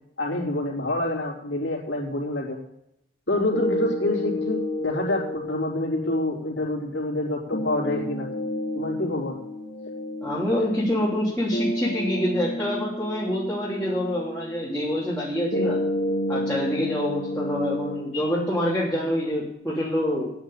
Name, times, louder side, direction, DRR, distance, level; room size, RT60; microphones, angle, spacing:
voice 1, 0.2-2.6 3.3-8.3 8.7-9.4, left 2 dB, 80° left, -3 dB, 3.6 m, -27 dB
sound 1, 3.5-19.5, left 1 dB, 50° left, 2.7 m, -31 dB
voice 2, 10.2-15.8 16.3-20.3, left 1 dB, 5° left, -9 dB, 3.1 m, -26 dB
9.6 x 9.0 x 8.6 m, 0.80 s
head